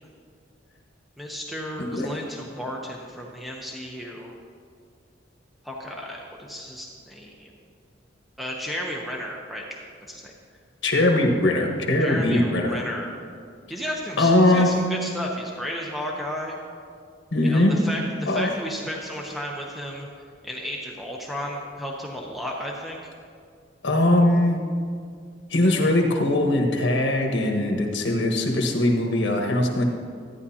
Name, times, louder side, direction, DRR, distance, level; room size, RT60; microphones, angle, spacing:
voice 1, 1.2-4.3 5.6-7.5 8.4-9.8 10.1-10.3 12.0-13.2 13.7-16.6 17.4-20.1 20.4-23.0, equal, ahead, -2 dB, 0.7 m, -33 dB
voice 2, 1.8-2.1 10.8-12.8 14.2-14.7 17.3-17.8 18.3-18.5 23.8-24.6 25.5-29.8, left 1 dB, 75° left, 2 dB, 1.3 m, -21 dB
13.5 x 9.6 x 2.8 m, 2.2 s
head